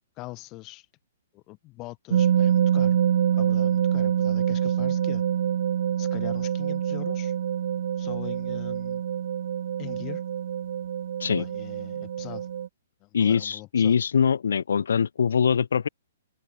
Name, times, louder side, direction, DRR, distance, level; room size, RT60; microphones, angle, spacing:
voice 1, 0.2-0.9 1.3-3.0 3.3-5.2 6.0-7.3 8.0-9.0 9.8-10.2 11.4-12.5 13.0-14.0, left 21 dB, 30° left, 3.3 m, -41 dB
sound 1, 2.1-12.7, right 9 dB, 60° right, 0.5 m, -26 dB
voice 2, 13.1-15.9, left 6 dB, 75° left, 1.2 m, -23 dB
open air
hypercardioid pair, 125°, 0 cm